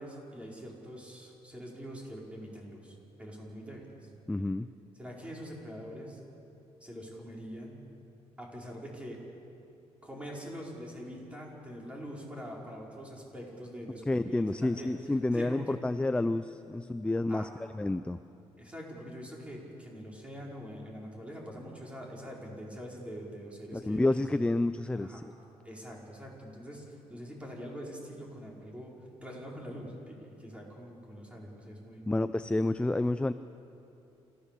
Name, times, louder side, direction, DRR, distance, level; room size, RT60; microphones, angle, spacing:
voice 1, 0.0-4.1 5.0-6.2 6.8-7.8 8.4-9.2 10.0-14.9 15.3-15.8 17.3-17.5 18.6-24.4 24.9-25.2 25.6-32.1, equal, 10° right, -3 dB, 5.0 m, -44 dB
voice 2, 4.3-4.7 14.1-18.2 23.7-25.3 32.1-33.3, left 2 dB, 10° left, 12 dB, 0.4 m, -29 dB
28.5 x 15.5 x 6.9 m, 2.8 s
cardioid pair, 110°, 12 cm